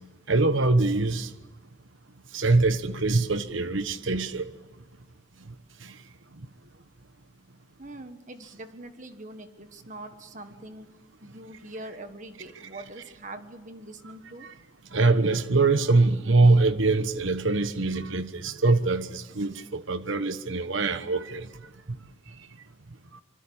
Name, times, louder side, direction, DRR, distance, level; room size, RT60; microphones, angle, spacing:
voice 1, 0.3-1.3 2.3-4.4 14.4-14.5 14.9-21.5, right 3 dB, 70° right, 1.2 m, -23 dB
voice 2, 7.8-10.9 11.2-14.5, right 2 dB, 35° right, 1.5 m, -43 dB
26.0 x 25.5 x 8.8 m
head